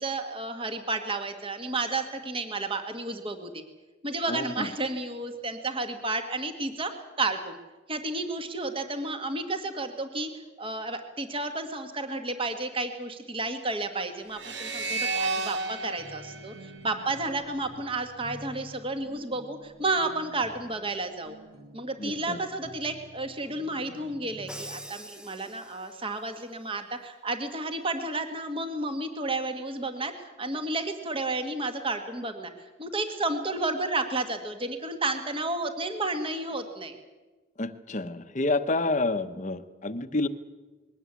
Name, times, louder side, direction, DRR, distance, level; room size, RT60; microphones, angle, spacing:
voice 1, 0.0-3.6 4.0-6.9 7.2-7.6 7.9-10.3 10.6-21.3 21.7-32.5 32.8-37.0, right 2 dB, 25° right, 7 dB, 1.6 m, -32 dB
voice 2, 4.3-4.7 22.0-22.4 37.6-40.3, left 2 dB, 35° left, 10 dB, 1.0 m, -29 dB
sound 1, 14.3-17.6, right 3 dB, 60° right, 1.7 m, -33 dB
sound 2, 16.0-24.9, equal, 80° right, 2.1 m, -50 dB
Crash cymbal, 24.5-26.1, equal, 5° right, 0.9 m, -44 dB
21.5 x 17.5 x 8.3 m, 1.2 s
head